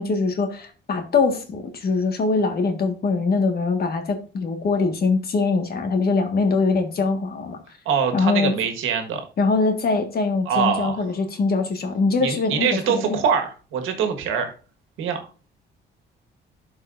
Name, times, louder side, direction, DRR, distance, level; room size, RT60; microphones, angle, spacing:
voice 1, 0.0-7.6 8.1-8.5 9.4-13.2, left 4 dB, 50° left, 5 dB, 1.6 m, -22 dB
voice 2, 7.8-9.2 10.4-11.0 12.2-14.5 15.0-15.2, right 7 dB, 85° right, 5 dB, 1.5 m, -23 dB
11.5 x 4.7 x 2.5 m, 0.36 s
cardioid pair, 90°, 20 cm